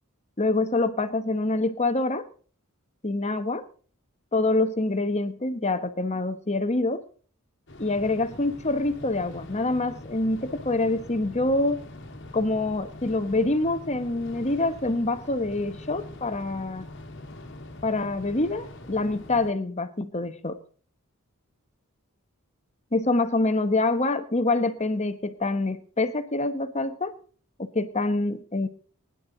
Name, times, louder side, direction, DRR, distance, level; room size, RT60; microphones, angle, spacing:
voice 1, 0.4-2.3 3.0-3.6 4.3-7.0 7.8-11.8 12.3-16.9 17.8-20.6 22.9-27.2 27.6-28.7, left 2 dB, 30° left, 10 dB, 1.1 m, -26 dB
sound 1, 7.7-19.5, left 1 dB, 60° left, 1.7 m, -43 dB
20.5 x 11.0 x 4.0 m, 0.43 s
head